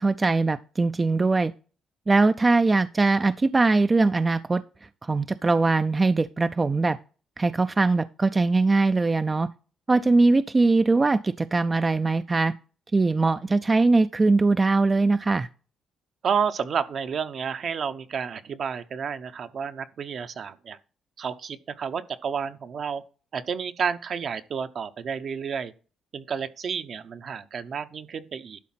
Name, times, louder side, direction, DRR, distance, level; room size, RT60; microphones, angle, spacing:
voice 1, 0.0-1.5 2.1-4.6 5.0-7.0 7.4-9.5 9.9-12.5 12.9-15.5, right 3 dB, 25° right, 0.4 m, -21 dB
voice 2, 16.2-20.8 21.2-23.0 23.3-25.7 26.1-28.6, right 6 dB, 55° right, 0.8 m, -30 dB
11.5 x 4.2 x 5.7 m
cardioid pair, 90°, 0 cm